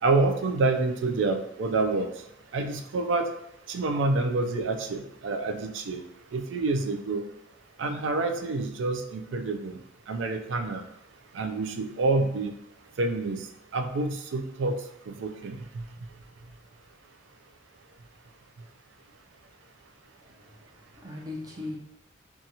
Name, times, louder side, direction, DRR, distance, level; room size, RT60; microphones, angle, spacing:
voice 1, 0.0-2.1 2.5-3.3 3.7-6.0 6.3-7.2 7.8-9.8 10.1-10.8 11.3-12.5 13.0-13.5 13.7-14.8 15.1-15.6, right 3 dB, 70° right, 5 dB, 0.3 m, -27 dB
voice 2, 20.2-21.8, left 2 dB, 20° right, -3 dB, 0.6 m, -40 dB
2.7 x 2.3 x 2.8 m, 0.80 s
head